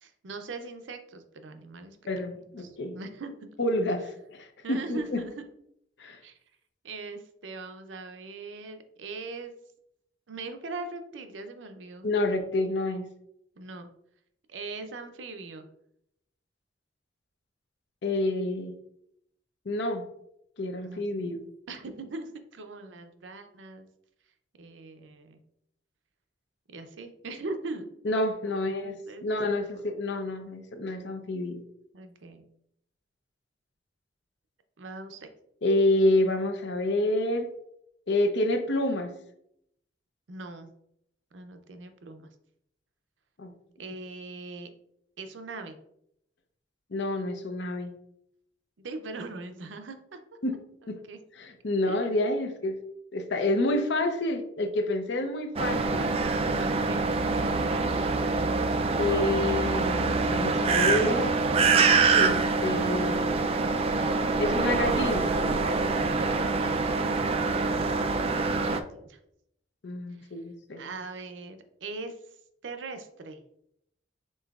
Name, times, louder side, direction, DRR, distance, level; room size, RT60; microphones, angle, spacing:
voice 1, 0.0-3.5 4.6-5.4 6.2-6.4 6.8-9.5 10.3-12.1 13.6-13.9 14.5-15.7 20.8-21.0 21.7-23.9 24.6-25.4 26.7-28.0 28.5-29.4 29.7-29.8 31.9-32.4 34.8-35.3 40.3-40.7 41.3-42.3 43.8-44.7 45.2-45.8 48.8-50.2 51.1-51.2 51.8-52.0 56.5-57.9 66.5-66.9 68.3-69.2 70.2-70.3 70.8-72.2 72.6-73.4, right 3 dB, 85° right, 7 dB, 0.6 m, -41 dB
voice 2, 2.1-3.0 3.6-5.2 6.0-6.2 12.0-13.1 18.0-18.7 19.7-20.0 20.6-21.4 28.0-31.6 35.6-37.5 38.1-39.1 43.4-43.5 46.9-47.9 50.4-50.6 50.9-51.0 51.4-52.8 53.1-56.1 59.0-61.3 62.1-63.5 64.4-65.3 69.8-70.9, left 1 dB, 70° left, 7 dB, 0.6 m, -28 dB
sound 1, 55.6-68.8, right 4 dB, 35° right, 0.3 m, -25 dB
5.4 x 3.8 x 2.4 m, 0.76 s
head